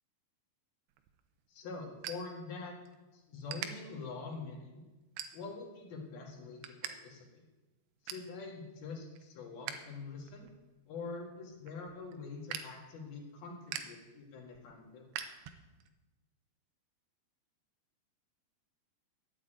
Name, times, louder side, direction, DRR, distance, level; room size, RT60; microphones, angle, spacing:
sound 1, 0.9-3.0 3.3-3.7 4.3-4.5 5.0-5.7 6.1-6.9 7.2-7.3 7.7-8.3 8.8-9.8 10.1-15.9, right 10 dB, 80° right, 2.9 m, -45 dB
voice 1, 1.5-2.8 3.1-4.8 5.3-7.4 8.1-10.5 10.9-15.1, left 4 dB, 65° left, 0 dB, 3.7 m, -45 dB
12.0 x 8.9 x 9.0 m, 1.1 s
omnidirectional pair, 4.9 m